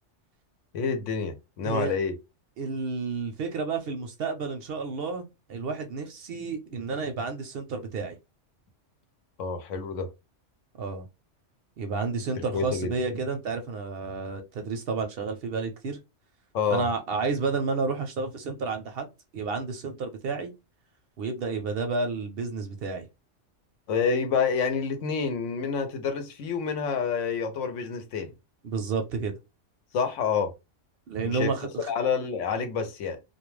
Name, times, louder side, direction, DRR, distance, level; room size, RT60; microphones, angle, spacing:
voice 1, 0.7-2.2 9.4-10.1 12.4-12.9 16.5-16.9 23.9-28.3 29.9-30.5 31.2-31.5 31.9-33.2, left 5 dB, 85° left, 1.0 m, -28 dB
voice 2, 1.6-1.9 2.6-8.2 10.8-11.1 11.8-16.0 16.7-20.5 21.2-23.1 28.6-29.3 31.1-31.9, right 4 dB, 65° right, 0.7 m, -31 dB
2.3 x 2.2 x 3.0 m
omnidirectional pair, 1.3 m